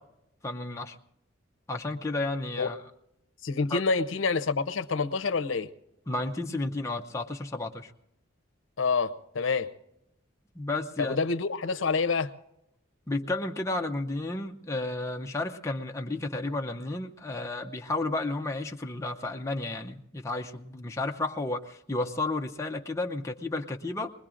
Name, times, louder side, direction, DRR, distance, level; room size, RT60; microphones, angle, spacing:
voice 1, 0.4-1.0 1.7-2.8 3.7-3.8 6.1-7.9 10.6-11.2 13.1-24.1, left 2 dB, 15° left, 0.6 m, -32 dB
voice 2, 3.4-5.7 8.8-9.7 11.0-12.3, left 4 dB, 80° left, 0.6 m, -27 dB
25.0 x 20.5 x 2.5 m
head